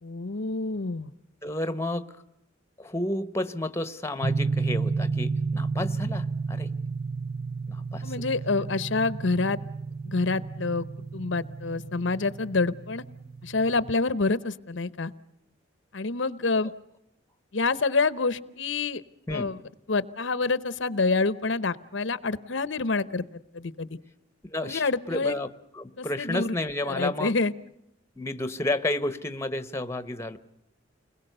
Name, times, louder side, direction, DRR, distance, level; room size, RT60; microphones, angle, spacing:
voice 1, 0.0-1.1 8.0-9.6 10.1-10.8 11.1-13.0 13.4-15.1 15.9-16.7 17.5-19.0 19.3-19.6 19.9-23.2 23.5-23.9 24.6-25.4 26.0-26.5 26.9-27.5, left 3 dB, 70° left, 15 dB, 0.9 m, -27 dB
voice 2, 1.4-2.2 2.8-6.7 7.7-8.1 19.3-19.5 24.5-27.3 28.2-30.4, left 1 dB, 15° left, 12 dB, 1.1 m, -31 dB
sound 1, 4.2-14.0, right 4 dB, 55° right, 0.8 m, -32 dB
30.0 x 21.0 x 6.8 m, 0.81 s
head